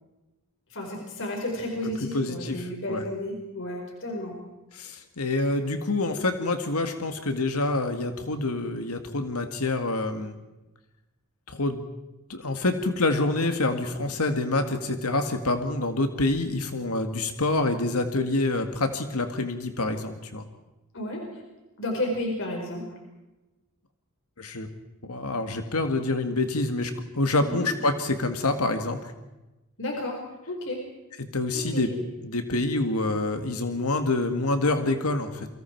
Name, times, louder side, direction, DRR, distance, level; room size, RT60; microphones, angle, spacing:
voice 1, 0.7-4.4 20.9-21.4 21.8-22.8 27.4-27.7 29.8-30.2 30.5-30.8 31.5-32.0, left 1 dB, 60° left, 1 dB, 4.7 m, -32 dB
voice 2, 1.8-3.1 4.7-10.4 11.5-11.8 12.3-20.5 24.4-24.7 25.0-29.0 31.3-31.9 32.2-35.5, left 2 dB, 80° left, 7 dB, 1.9 m, -27 dB
29.0 x 24.0 x 4.6 m, 1.1 s
head